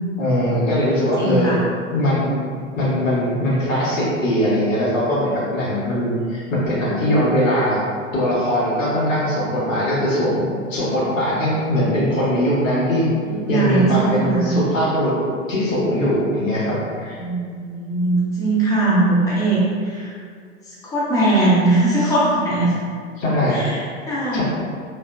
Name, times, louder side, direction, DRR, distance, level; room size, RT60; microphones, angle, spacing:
voice 1, 0.2-1.6 1.9-2.4 2.8-7.8 8.1-10.4 10.7-13.1 13.5-15.2 15.5-17.2 23.2-23.6 24.3-24.4, equal, 75° left, -7 dB, 1.1 m, -20 dB
voice 2, 1.2-1.6 13.2-14.6 17.1-20.1 20.6-22.7 23.5-23.8 24.1-24.4, right 2 dB, 10° left, -8 dB, 0.5 m, -20 dB
2.7 x 2.4 x 2.3 m, 2.1 s
figure-of-eight pair, 95°, 39 cm